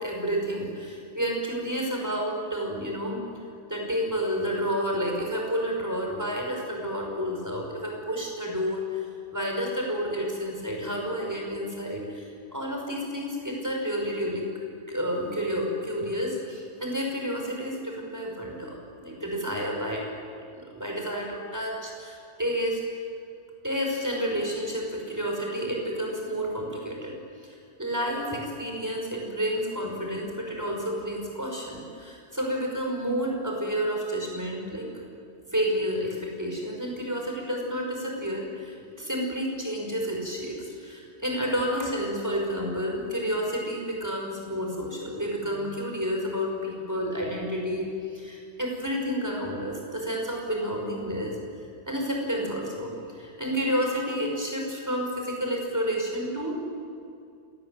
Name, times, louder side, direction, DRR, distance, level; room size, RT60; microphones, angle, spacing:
voice 1, 0.0-3.3 3.7-9.1 9.3-14.5 14.9-20.0 20.5-22.8 23.6-27.2 27.4-34.9 35.5-51.4 51.9-56.6, equal, 15° right, 0 dB, 5.8 m, -30 dB
27.5 x 20.0 x 9.3 m, 2.3 s
omnidirectional pair, 1.2 m